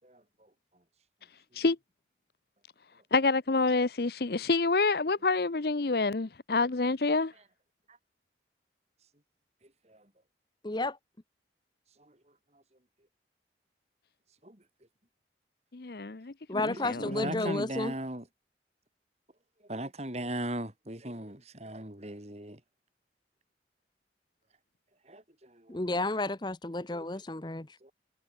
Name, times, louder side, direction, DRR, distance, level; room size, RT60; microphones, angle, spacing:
voice 1, 0.0-0.5 1.5-1.6 7.9-8.0 9.6-10.1 12.0-12.2 12.5-12.6 14.4-14.6 16.7-18.3 19.6-22.6 25.0-25.8 26.9-27.5 27.8-27.9, right 1 dB, 35° right, 4.1 m, -39 dB
voice 2, 3.1-7.3 15.7-17.6, left 3 dB, 55° left, 0.8 m, -28 dB
voice 3, 10.6-11.0 16.5-17.9 25.7-27.7, left 2 dB, 25° left, 0.9 m, -32 dB
head